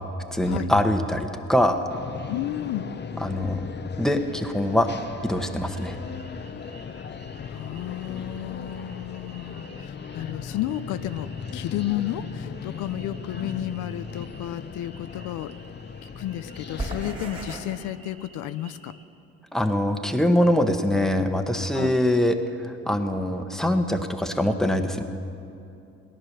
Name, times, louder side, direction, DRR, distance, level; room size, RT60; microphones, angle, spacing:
voice 1, 0.3-2.0 3.2-3.6 4.0-4.9 5.2-6.0 19.5-22.4 22.6-25.0, left 1 dB, ahead, 6 dB, 1.1 m, -23 dB
sound 1, 1.9-17.2, left 6 dB, 35° left, 0.7 m, -38 dB
voice 2, 2.3-2.9 7.4-15.5 16.0-18.9 21.7-22.0, left 13 dB, 85° left, 13 dB, 0.5 m, -32 dB
sound 2, 5.6-19.1, right 1 dB, 20° right, 2.5 m, -44 dB
17.5 x 10.5 x 6.7 m, 2.6 s
cardioid pair, 90°, 30 cm